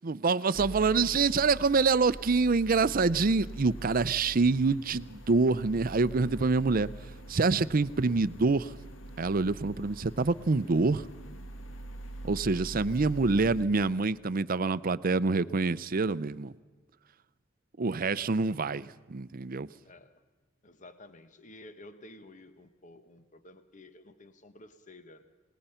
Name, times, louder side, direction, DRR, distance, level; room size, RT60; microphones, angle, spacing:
voice 1, 0.0-6.9 7.3-8.7 9.2-11.0 12.2-16.5 17.8-19.7, right 4 dB, 45° right, 0.6 m, -26 dB
sound 1, 0.5-13.6, right 1 dB, 70° left, 1.6 m, -44 dB
voice 2, 20.6-25.2, left 1 dB, 40° left, 1.1 m, -52 dB
28.0 x 19.5 x 5.7 m
head